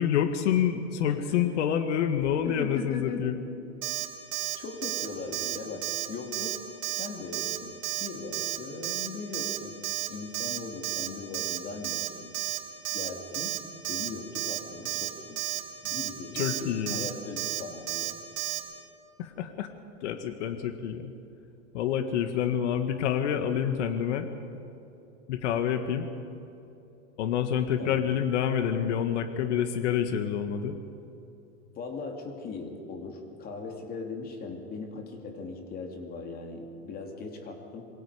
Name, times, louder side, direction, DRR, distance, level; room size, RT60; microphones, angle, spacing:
voice 1, 0.0-3.4 16.3-17.1 19.2-19.7 20.0-21.1 21.7-24.3 25.3-26.1 27.2-30.8, left 9 dB, 75° left, 7 dB, 1.8 m, -27 dB
voice 2, 1.1-1.5 2.4-3.4 4.6-6.5 6.9-9.7 10.1-12.4 12.9-15.4 15.8-18.2 27.8-28.0 31.7-37.9, left 4 dB, 25° left, 3 dB, 2.7 m, -39 dB
Alarm, 3.8-4.1 4.3-4.6 4.8-5.1 5.3-5.6 5.8-6.1 6.3-6.6 6.8-7.1 7.3-7.6 7.8-8.1 8.3-8.6 8.8-9.1 9.3-9.6 9.8-10.1 10.3-10.6 10.8-11.1 11.3-11.6 11.8-12.1 12.3-12.6 12.8-13.1 13.3-13.6 13.8-14.1 14.3-14.6 14.9-15.1 15.4-15.6 15.9-16.1 16.4-16.6 16.9-17.1 17.4-17.6 17.9-18.1 18.4-18.6, right 15 dB, 70° right, 3.2 m, -32 dB
27.5 x 22.5 x 5.0 m, 2.8 s
supercardioid pair, 155°, 35 cm